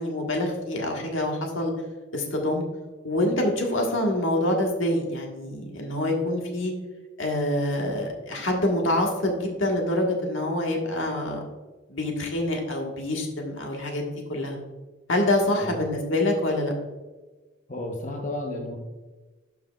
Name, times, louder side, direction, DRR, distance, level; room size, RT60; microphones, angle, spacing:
voice 1, 0.0-1.7 2.1-2.6 3.0-6.7 7.2-11.4 11.9-14.0 14.3-14.6 15.1-16.7, left 1 dB, 85° left, 1 dB, 1.5 m, -26 dB
voice 2, 17.7-18.8, left 1 dB, 40° left, 1 dB, 0.9 m, -32 dB
12.0 x 5.6 x 2.4 m, 1.2 s
head